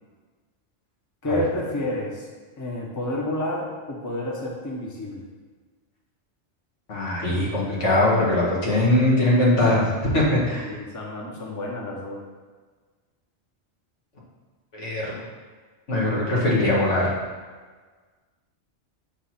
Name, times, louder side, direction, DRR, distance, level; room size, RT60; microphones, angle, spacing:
voice 1, 1.2-2.3 2.6-5.2 10.5-12.2, left 1 dB, 20° left, -1 dB, 0.8 m, -30 dB
voice 2, 6.9-10.7 14.7-15.2 15.9-17.1, left 1 dB, 85° left, -5 dB, 1.9 m, -21 dB
6.7 x 3.1 x 5.7 m, 1.4 s
omnidirectional pair, 1.2 m